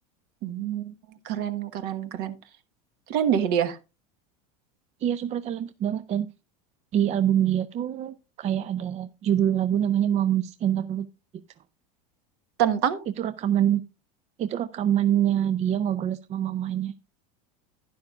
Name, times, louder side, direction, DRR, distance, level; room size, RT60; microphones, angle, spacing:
voice 1, 0.4-0.9 1.2-2.3 3.1-3.8 12.6-13.0, right 9 dB, 60° right, 11 dB, 1.3 m, -26 dB
voice 2, 5.0-6.3 6.9-11.1 13.2-13.8 14.4-16.9, right 10 dB, 35° right, 13 dB, 0.5 m, -25 dB
11.5 x 10.5 x 2.4 m, 0.28 s
supercardioid pair, 110°, 19 cm